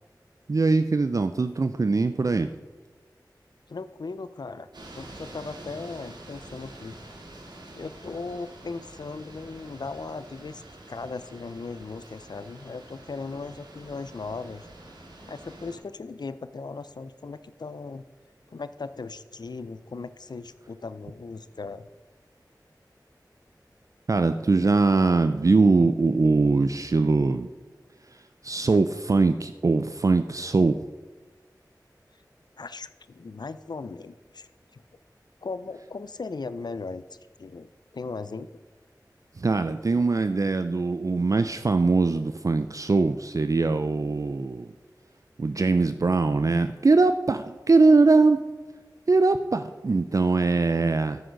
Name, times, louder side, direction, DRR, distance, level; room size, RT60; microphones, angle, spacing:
voice 1, 0.5-2.5 24.1-27.5 28.4-30.8 39.4-44.7 45.4-48.4 49.1-51.2, right 3 dB, 50° right, 10 dB, 0.4 m, -22 dB
voice 2, 3.7-4.7 4.9-7.0 7.7-14.7 15.3-18.0 18.5-21.9 32.6-34.8 35.4-37.0 37.4-38.6, left 4 dB, 70° left, 14 dB, 0.4 m, -38 dB
sound 1, 4.7-15.8, right 1 dB, 75° right, 1.7 m, -46 dB
9.3 x 6.4 x 5.1 m, 1.3 s
wide cardioid pair, 55°, 7 cm